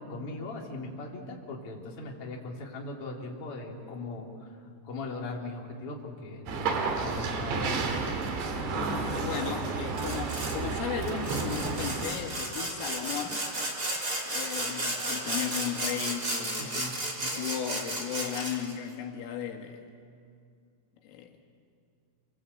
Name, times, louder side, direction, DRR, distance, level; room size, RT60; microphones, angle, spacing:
voice 1, 0.1-4.5 4.8-9.8 16.6-16.9, left 2 dB, 35° left, -1 dB, 3.5 m, -40 dB
sound 1, 6.5-12.1, right 4 dB, 65° right, 4.4 m, -31 dB
voice 2, 8.8-13.5 14.3-16.8 17.2-19.8 21.0-21.4, left 9 dB, 90° left, 3 dB, 4.5 m, -36 dB
Sawing, 10.0-10.6 11.0-18.7, right 1 dB, 20° right, 3.2 m, -33 dB
28.0 x 23.0 x 8.4 m, 2.3 s
omnidirectional pair, 5.6 m